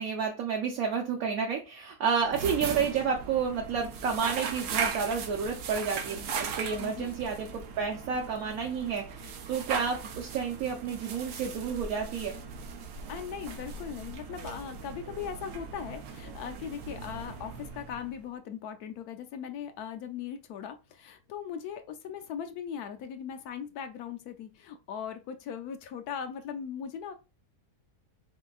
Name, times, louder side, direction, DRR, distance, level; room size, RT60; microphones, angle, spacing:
voice 1, 0.0-12.4, right 6 dB, 65° right, 1.1 m, -30 dB
sound 1, 2.2-18.3, right 6 dB, 90° right, 1.3 m, -38 dB
voice 2, 6.8-7.1 13.1-27.1, left 8 dB, 75° left, 1.1 m, -39 dB
5.0 x 3.7 x 2.3 m
omnidirectional pair, 1.7 m